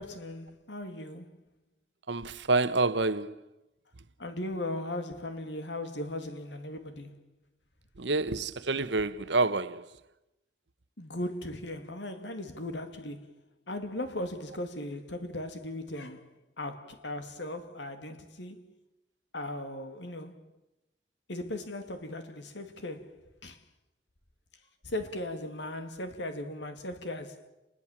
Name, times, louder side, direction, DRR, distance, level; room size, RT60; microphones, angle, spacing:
voice 1, 0.0-1.4 4.2-7.2 11.0-18.7 19.3-20.5 21.3-23.6 24.8-27.5, left 1 dB, 80° left, 2.6 m, -38 dB
voice 2, 2.1-3.4 8.0-9.8, right 3 dB, 80° right, 1.1 m, -28 dB
29.5 x 20.5 x 7.5 m
head